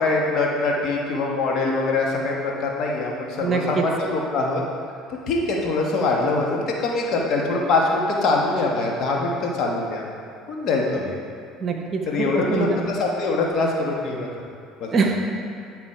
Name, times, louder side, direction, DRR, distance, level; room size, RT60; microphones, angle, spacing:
voice 1, 0.0-4.6 5.1-10.1 10.5-11.2 12.1-14.3 14.8-15.1, left 3 dB, 60° left, -2 dB, 1.4 m, -23 dB
voice 2, 3.4-3.8 11.6-12.8 14.9-15.2, right 4 dB, 40° right, 3 dB, 0.9 m, -24 dB
10.0 x 4.1 x 4.4 m, 2.3 s
supercardioid pair, 80°, 0 cm